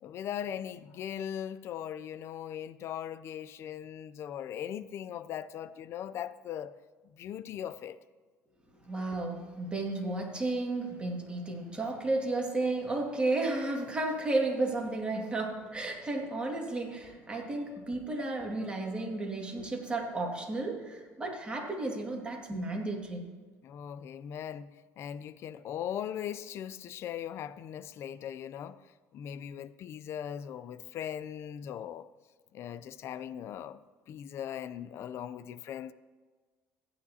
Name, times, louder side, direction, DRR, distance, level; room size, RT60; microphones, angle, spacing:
voice 1, 0.0-6.7 7.1-8.0 23.6-28.8 29.1-32.1 32.5-33.8 34.1-35.9, left 9 dB, 55° left, 0.4 m, -39 dB
voice 2, 8.8-23.3, right 2 dB, 20° right, 2.0 m, -33 dB
15.5 x 9.8 x 2.8 m
cardioid pair, 105°, 5 cm